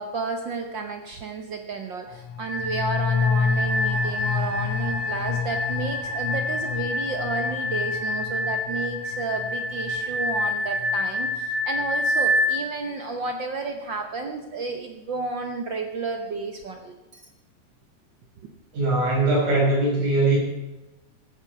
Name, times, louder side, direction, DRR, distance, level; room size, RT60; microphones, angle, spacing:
voice 1, 0.0-17.2, right 4 dB, 60° right, 4 dB, 1.2 m, -32 dB
sound 1, 2.1-11.5 11.8-11.9, left 6 dB, 75° left, 2.1 m, -30 dB
sound 2, 2.4-12.6, left 1 dB, 25° right, 2.3 m, -27 dB
voice 2, 18.7-20.4, right 2 dB, 80° right, -5 dB, 7.7 m, -21 dB
15.5 x 10.0 x 6.0 m, 1.1 s
omnidirectional pair, 3.4 m